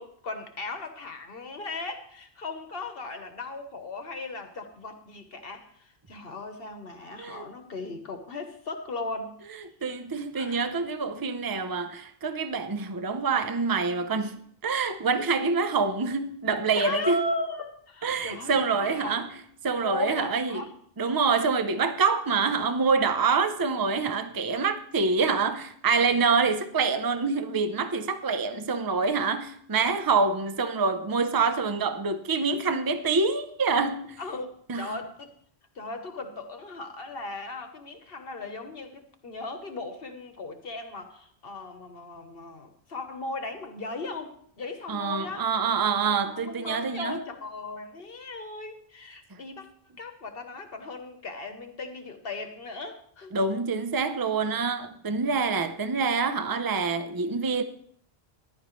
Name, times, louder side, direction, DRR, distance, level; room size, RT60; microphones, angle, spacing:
voice 1, 0.0-9.4 10.3-10.7 16.8-19.2 19.8-20.7 34.2-35.3 35.7-45.5 46.1-49.7 50.0-53.3, left 2 dB, 65° left, 1.3 m, -37 dB
voice 2, 9.8-17.2 18.0-19.3 19.6-20.6 21.0-34.2 34.7-34.9 44.9-47.2 53.3-57.6, right 4 dB, 25° right, 0.6 m, -26 dB
15.0 x 11.5 x 3.1 m
omnidirectional pair, 1.1 m